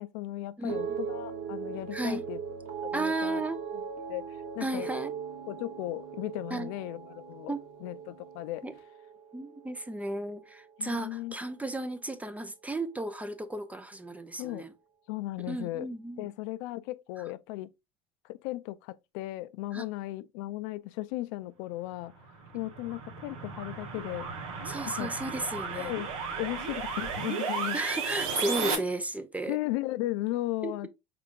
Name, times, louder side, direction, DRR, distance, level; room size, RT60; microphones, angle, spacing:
voice 1, 0.0-2.4 2.8-3.4 4.1-4.9 5.5-7.5 7.8-8.6 10.8-11.4 14.4-14.6 15.1-17.7 18.2-22.1 22.5-24.3 24.9-25.1 25.7-26.1 26.4-27.8 28.6-28.9 29.5-30.9, left 17 dB, 70° left, 0.4 m, -36 dB
voice 2, 0.6-1.0 1.9-2.2 2.9-3.6 4.6-5.1 6.5-6.7 7.5-7.6 8.6-8.7 9.3-14.7 15.5-16.3 19.7-19.8 24.7-25.9 27.7-29.6 30.6-30.7, right 2 dB, 10° right, 0.6 m, -34 dB
sound 1, 0.7-11.0 11.3-11.9, right 7 dB, 65° right, 1.1 m, -40 dB
sound 2, 22.2-28.8, right 5 dB, 85° right, 1.2 m, -34 dB
5.0 x 3.8 x 2.5 m
supercardioid pair, 105°, 17 cm